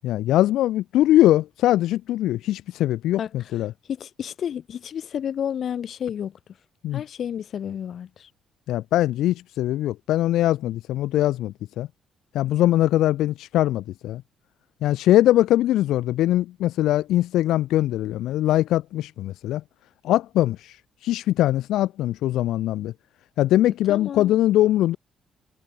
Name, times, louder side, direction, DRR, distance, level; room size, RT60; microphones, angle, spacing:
voice 1, 0.0-3.7 6.8-7.0 8.7-11.9 12.3-14.2 14.8-19.6 20.0-20.8 21.0-22.9 23.4-25.0, left 14 dB, 85° left, 0.6 m, -21 dB
voice 2, 3.9-6.4 6.9-8.3 23.9-24.3, left 9 dB, 60° left, 4.4 m, -31 dB
cardioid pair, 90°, 0 cm